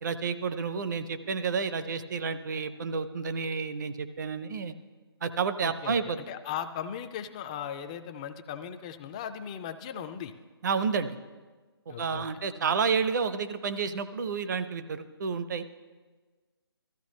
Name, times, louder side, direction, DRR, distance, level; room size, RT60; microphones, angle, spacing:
voice 1, 0.0-4.7 5.2-6.2 10.6-11.1 11.9-15.7, right 5 dB, 45° right, 12 dB, 0.7 m, -30 dB
voice 2, 5.6-10.3 11.9-12.3, left 9 dB, 15° left, 9 dB, 0.3 m, -38 dB
16.5 x 14.0 x 3.1 m, 1.4 s
figure-of-eight pair, 150°, 13 cm